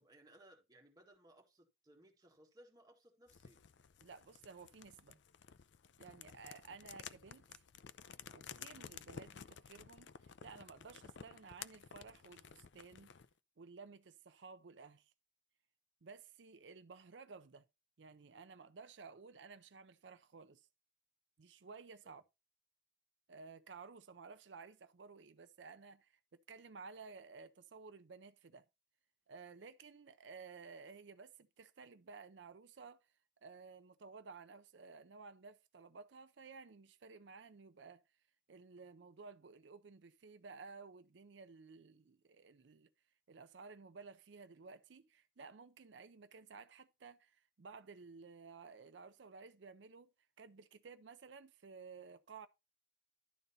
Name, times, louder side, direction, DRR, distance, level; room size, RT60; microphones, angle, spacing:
voice 1, 0.0-3.6 22.0-22.2, right 1 dB, 20° right, 1.9 m, -64 dB
sound 1, 3.3-13.3, left 7 dB, 80° left, 0.5 m, -54 dB
voice 2, 4.0-5.2 6.0-7.4 8.3-13.1 13.6-15.1 16.0-17.7 18.0-20.7 21.4-22.2 23.3-28.6 29.3-33.1 33.4-38.0 38.5-42.9 43.3-50.1 50.4-52.5, right 4 dB, 80° right, 0.5 m, -55 dB
11.5 x 3.9 x 5.4 m
head